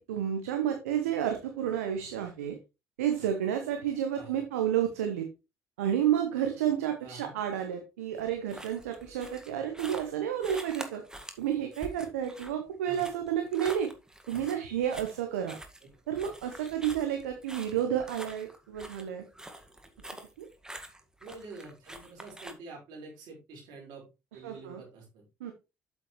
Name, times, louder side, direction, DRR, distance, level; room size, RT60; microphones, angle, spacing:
voice 1, 0.1-2.6 3.0-5.3 5.8-11.0 11.4-13.9 14.3-15.6 16.1-19.2 20.4-20.5 24.4-24.8 25.4-25.5, right 10 dB, 85° right, 5 dB, 1.1 m, -31 dB
voice 2, 7.0-7.3 12.8-13.0 14.3-14.5 21.2-24.1 24.3-25.2, right 3 dB, 70° right, -1 dB, 4.7 m, -47 dB
sound 1, 8.2-22.5, right 1 dB, 10° right, 1.8 m, -46 dB
8.1 x 7.5 x 3.2 m, 0.26 s
hypercardioid pair, 55°, 8 cm